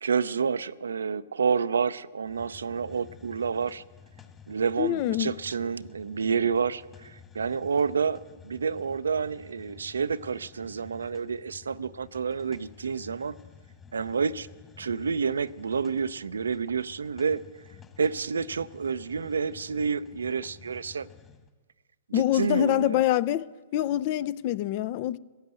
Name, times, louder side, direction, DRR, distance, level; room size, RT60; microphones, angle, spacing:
voice 1, 0.0-3.8 4.5-13.4 13.9-14.5 14.8-17.4 18.0-21.1 22.1-23.0, right 6 dB, 80° right, 0.5 m, -29 dB
Hiss, 2.2-21.5, left 6 dB, 20° left, 1.7 m, -52 dB
voice 2, 4.8-5.3 22.1-23.5 23.7-25.2, left 13 dB, 45° left, 0.5 m, -25 dB
16.0 x 10.5 x 7.7 m
hypercardioid pair, 120°, 0 cm